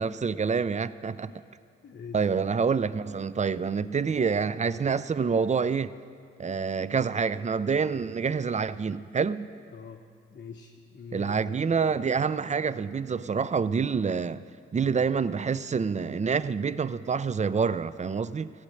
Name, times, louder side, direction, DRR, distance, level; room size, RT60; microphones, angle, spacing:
voice 1, 0.0-1.3 2.1-5.9 6.4-9.5 11.1-14.4 14.7-18.5, right 5 dB, 25° right, 0.4 m, -27 dB
voice 2, 1.3-2.3 9.7-10.0 10.3-11.7, left 6 dB, 35° left, 0.9 m, -45 dB
15.0 x 8.6 x 6.5 m
hypercardioid pair, 40°, 30 cm